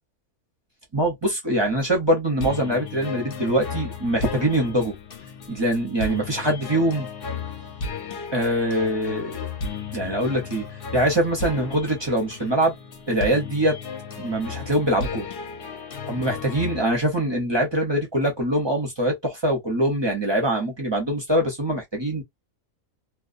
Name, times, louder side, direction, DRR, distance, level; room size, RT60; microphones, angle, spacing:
voice 1, 0.9-4.9 5.5-7.1 8.3-9.4 9.9-10.7 10.9-12.7 13.1-13.8 14.2-15.3 16.1-22.2, right 1 dB, 30° right, 0.5 m, -23 dB
sound 1, 2.4-16.8, left 5 dB, 55° left, 0.7 m, -34 dB
2.3 x 2.1 x 2.4 m
omnidirectional pair, 1.5 m